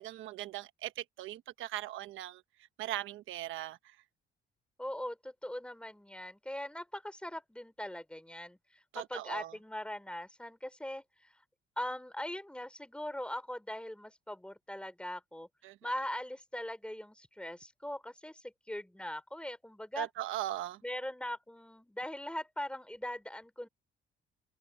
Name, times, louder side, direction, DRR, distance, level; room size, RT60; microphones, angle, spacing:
voice 1, 0.0-2.4 2.8-4.0 8.9-9.5 15.6-15.9 19.9-20.8, right 13 dB, 85° right, 1.1 m, -39 dB
voice 2, 4.8-8.6 8.9-11.3 11.8-15.5 15.8-20.1 20.8-23.7, left 1 dB, 5° left, 4.6 m, -41 dB
cardioid pair, 90°, 20 cm